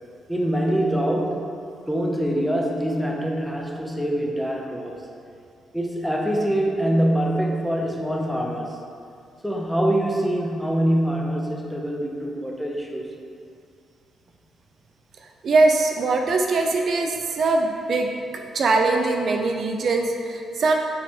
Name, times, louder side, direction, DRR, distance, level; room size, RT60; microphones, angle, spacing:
voice 1, 0.3-1.5 1.9-5.0 5.7-8.8 9.4-13.1, right 1 dB, ahead, -1 dB, 0.7 m, -24 dB
voice 2, 15.4-20.7, right 3 dB, 50° right, 3 dB, 0.5 m, -22 dB
9.4 x 3.3 x 4.4 m, 2.3 s
cardioid pair, 150°, 0 cm